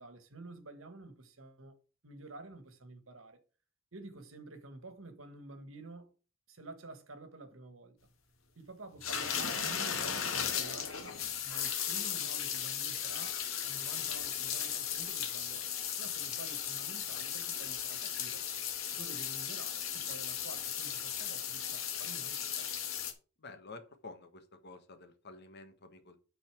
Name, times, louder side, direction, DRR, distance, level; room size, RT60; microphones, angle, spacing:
voice 1, 0.0-1.8 2.0-3.4 3.9-6.1 6.5-8.0 8.5-15.7 16.0-18.4 18.9-22.7, right 2 dB, 80° right, 1.5 m, -50 dB
sound 1, 9.0-23.1, left 8 dB, 90° left, 1.5 m, -36 dB
voice 2, 23.4-26.2, left 3 dB, 55° left, 1.4 m, -51 dB
9.0 x 4.1 x 6.1 m
head